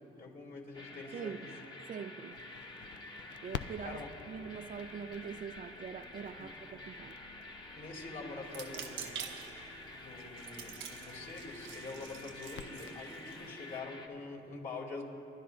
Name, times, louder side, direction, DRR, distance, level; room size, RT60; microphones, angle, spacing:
voice 1, 0.0-1.5 3.8-4.3 6.4-6.5 7.7-9.1 9.9-15.0, left 3 dB, 45° left, -1 dB, 2.6 m, -45 dB
sound 1, 0.7-14.1, left 2 dB, 20° left, 1.3 m, -49 dB
voice 2, 1.1-1.5 1.9-2.4 3.4-7.2, right 6 dB, 45° right, 9 dB, 0.5 m, -43 dB
Crackle, 2.3-13.5, left 9 dB, 65° left, 0.5 m, -51 dB
sound 2, 8.4-13.8, right 7 dB, 75° right, 1.0 m, -47 dB
29.5 x 11.5 x 2.5 m, 2.7 s
cardioid pair, 90°, 20 cm